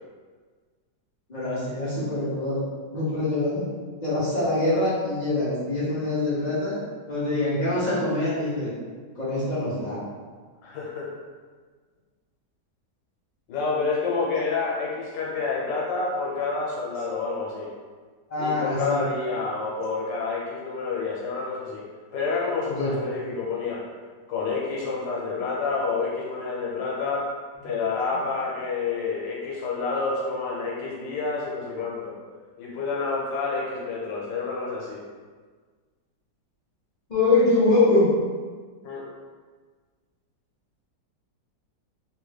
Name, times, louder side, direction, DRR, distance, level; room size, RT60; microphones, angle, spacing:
voice 1, 1.3-2.6 2.9-3.6 4.0-6.8 7.1-8.7 9.2-10.0 18.3-19.0 22.6-23.0 37.1-38.1, left 2 dB, 50° left, -11 dB, 0.5 m, -24 dB
voice 2, 10.6-11.1 13.5-17.7 18.4-21.8 22.1-23.8 24.3-27.3 27.6-32.1 32.6-35.0 38.8-39.1, left 4 dB, 85° left, -5 dB, 1.4 m, -28 dB
3.2 x 2.3 x 3.2 m, 1.5 s
omnidirectional pair, 1.9 m